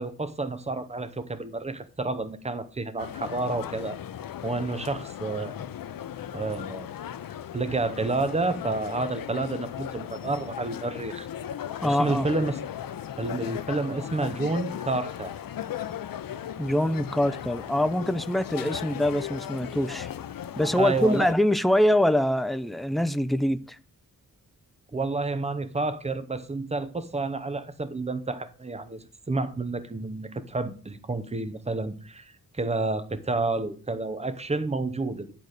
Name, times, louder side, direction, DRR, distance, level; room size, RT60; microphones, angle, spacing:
voice 1, 0.0-4.0 4.4-5.5 6.3-6.9 7.5-11.3 11.8-12.6 13.2-15.3 20.6-21.3 24.9-35.3, right 3 dB, 20° right, 0.8 m, -30 dB
sound 1, 3.0-21.3, left 10 dB, 80° left, 0.6 m, -37 dB
voice 2, 11.8-12.3 16.6-20.1 20.6-23.8, left 1 dB, ahead, 0.4 m, -24 dB
11.0 x 4.0 x 6.5 m
wide cardioid pair, 170°, 34 cm